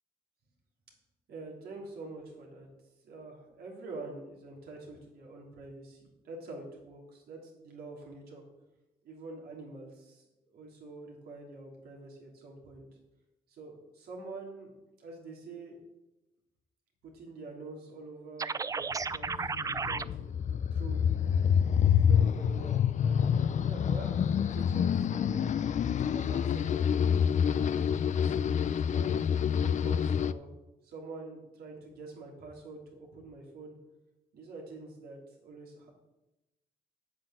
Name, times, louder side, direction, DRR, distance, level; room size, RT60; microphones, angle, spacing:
voice 1, 1.3-2.7 3.0-8.4 9.0-12.9 13.5-14.7 15.0-15.8 17.0-21.1 21.8-25.4 26.1-26.9 27.4-30.5 30.8-33.8 34.3-35.9, right 3 dB, 80° right, -1 dB, 3.1 m, -46 dB
sound 1, 18.4-20.0, right 5 dB, 20° right, 0.3 m, -33 dB
sound 2, 19.0-30.3, left 8 dB, 50° left, 0.5 m, -27 dB
8.2 x 6.5 x 7.7 m, 0.97 s
cardioid pair, 85°, 16 cm